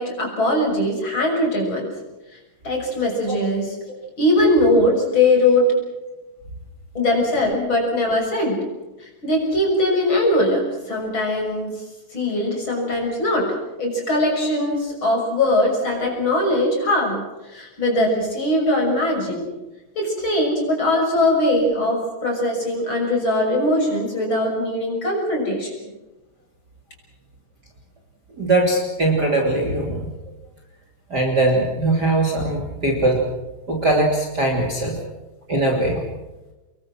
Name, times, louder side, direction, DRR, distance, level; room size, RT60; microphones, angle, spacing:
voice 1, 0.0-1.9 2.6-3.7 4.2-5.7 7.0-8.6 9.0-11.8 12.1-17.2 17.5-19.5 20.0-25.7, left 1 dB, 35° left, 1 dB, 7.0 m, -21 dB
voice 2, 28.3-30.1 31.1-33.2 33.7-35.0 35.5-36.0, right 2 dB, 30° right, 1 dB, 3.3 m, -20 dB
26.5 x 22.0 x 6.2 m, 1.1 s
omnidirectional pair, 4.0 m